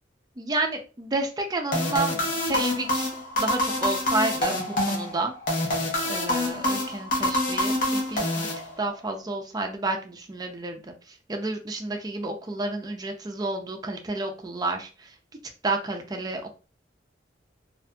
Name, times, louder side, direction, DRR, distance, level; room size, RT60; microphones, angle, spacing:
voice 1, 0.4-4.6 4.9-5.3 6.1-8.5 8.8-10.9 11.3-15.1 15.6-16.5, right 2 dB, 20° right, 3 dB, 0.4 m, -30 dB
sound 1, 1.7-9.1, left 1 dB, 45° left, 0.7 m, -26 dB
2.6 x 2.4 x 2.2 m, 0.35 s
head